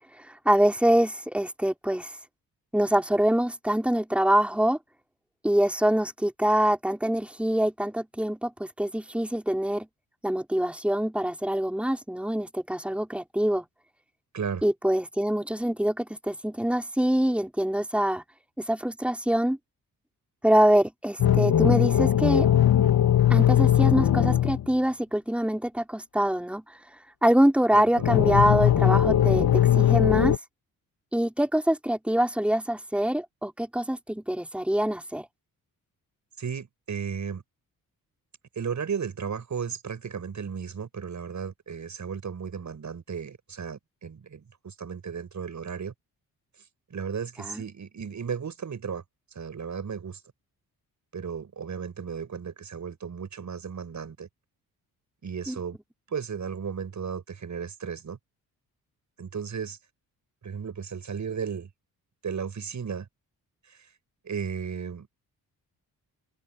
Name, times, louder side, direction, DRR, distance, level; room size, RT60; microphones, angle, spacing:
voice 1, 0.5-2.1 2.7-4.8 5.4-9.9 10.2-13.6 14.6-18.2 18.6-19.6 20.4-22.5 23.3-26.6 27.2-29.5 29.8-30.3 31.1-35.2 47.4-47.6 55.5-55.6, right 1 dB, 5° right, 5.5 m, -24 dB
sound 1, 21.2-24.7 28.0-30.4, left 11 dB, 75° left, 3.8 m, -20 dB
voice 2, 27.7-28.0 36.4-37.4 38.6-45.9 46.9-49.0 49.3-50.2 51.1-54.3 55.2-55.8 56.1-58.2 59.2-59.8 60.4-61.7 62.2-63.1 64.2-65.1, right 6 dB, 50° right, 7.9 m, -34 dB
cardioid pair, 85°, 37 cm